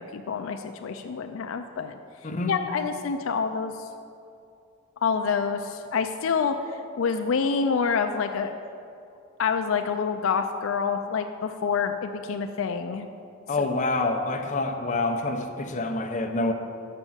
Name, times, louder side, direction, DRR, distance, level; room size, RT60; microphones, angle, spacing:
voice 1, 0.0-2.0 2.5-3.9 5.0-6.6 7.0-8.5 9.4-13.1 13.6-13.7, left 5 dB, 75° left, 6 dB, 0.4 m, -27 dB
voice 2, 13.5-16.5, left 2 dB, 35° left, 4 dB, 0.7 m, -27 dB
6.7 x 6.1 x 7.2 m, 2.5 s
head